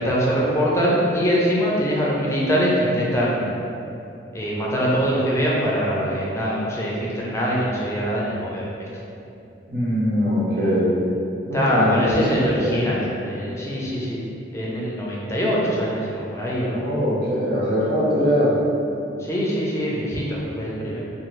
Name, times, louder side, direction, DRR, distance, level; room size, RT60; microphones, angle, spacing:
voice 1, 0.0-3.6 4.3-8.9 11.5-14.2 14.5-16.8 19.2-21.0, equal, 15° left, -5 dB, 0.4 m, -23 dB
voice 2, 9.7-10.9 11.5-12.8 16.7-18.5, equal, 60° right, -8 dB, 0.8 m, -22 dB
2.6 x 2.5 x 3.0 m, 2.7 s
head